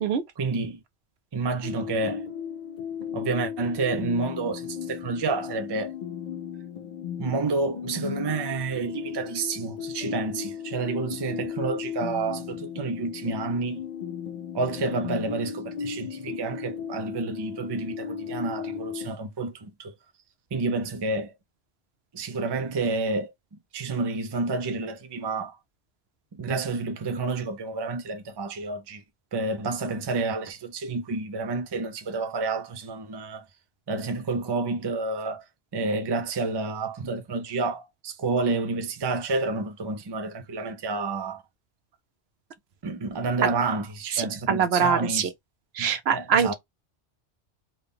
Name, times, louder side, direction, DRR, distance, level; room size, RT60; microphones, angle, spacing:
voice 1, 0.4-0.8 1.3-2.3 3.1-5.9 7.2-13.8 14.5-19.9 20.5-21.3 22.1-23.3 23.7-25.6 26.3-29.0 29.3-33.4 33.9-35.4 35.7-41.4 42.8-45.3 45.8-46.5, right 3 dB, 35° right, 0.4 m, -29 dB
sound 1, 1.6-19.1, left 7 dB, 55° left, 0.5 m, -36 dB
voice 2, 44.5-45.3 45.8-46.5, right 7 dB, 70° right, 0.9 m, -23 dB
3.8 x 2.2 x 3.4 m
omnidirectional pair, 1.1 m